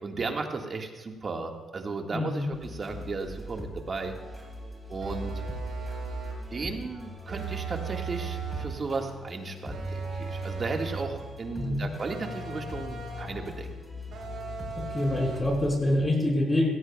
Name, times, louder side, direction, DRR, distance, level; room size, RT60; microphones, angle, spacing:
voice 1, 0.0-4.1 4.9-5.3 6.5-13.7, right 3 dB, 40° right, 3 dB, 1.6 m, -35 dB
voice 2, 2.1-2.5 11.6-11.9 14.7-16.7, left 1 dB, 20° left, -1 dB, 4.3 m, -26 dB
sound 1, 2.5-15.8, left 1 dB, ahead, 3.7 m, -42 dB
sound 2, 5.0-6.5 7.3-8.8 9.7-11.2 12.0-13.4 14.1-15.6, right 4 dB, 70° right, 3.8 m, -36 dB
17.5 x 16.0 x 2.3 m, 1.3 s
cardioid pair, 90°, 0 cm